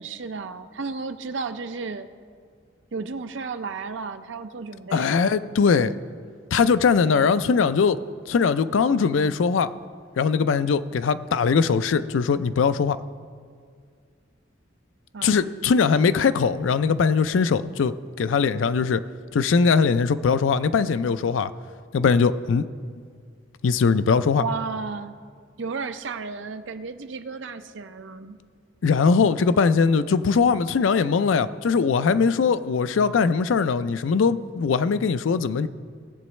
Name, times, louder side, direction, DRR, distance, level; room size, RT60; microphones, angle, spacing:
voice 1, 0.0-2.1 2.9-5.4 15.1-15.5 24.3-25.2 25.6-28.4, right 4 dB, 75° right, 9 dB, 0.6 m, -33 dB
voice 2, 4.9-5.9 6.5-8.0 8.3-9.7 10.2-13.0 15.2-19.0 19.3-21.5 21.9-22.7 23.6-24.4 28.8-35.7, left 5 dB, 85° left, 13 dB, 0.4 m, -21 dB
18.5 x 7.7 x 3.2 m, 2.1 s
head